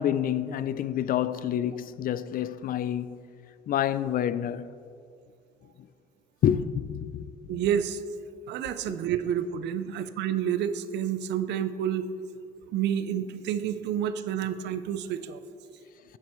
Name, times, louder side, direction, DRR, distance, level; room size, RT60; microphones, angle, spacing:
voice 1, 0.0-3.2 3.7-4.7 5.8-5.9 6.4-7.3 8.9-9.0, left 10 dB, 50° left, 0.4 m, -28 dB
voice 2, 7.5-8.0 8.5-12.1 12.7-15.4, right 9 dB, 75° right, 0.5 m, -29 dB
10.0 x 7.5 x 3.1 m
cardioid pair, 85°, 18 cm